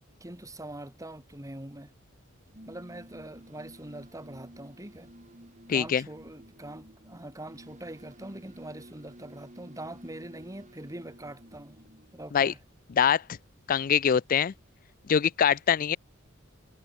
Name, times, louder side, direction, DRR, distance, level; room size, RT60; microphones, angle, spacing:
voice 1, 0.2-1.9 2.7-5.1 5.7-11.8 12.1-12.6, right 1 dB, 15° right, 2.5 m, -43 dB
sound 1, 2.4-12.8, right 1 dB, 35° right, 6.5 m, -52 dB
voice 2, 5.7-6.0 12.3-12.5 12.9-13.2 13.7-14.5 15.1-16.0, left 8 dB, 40° left, 0.4 m, -23 dB
head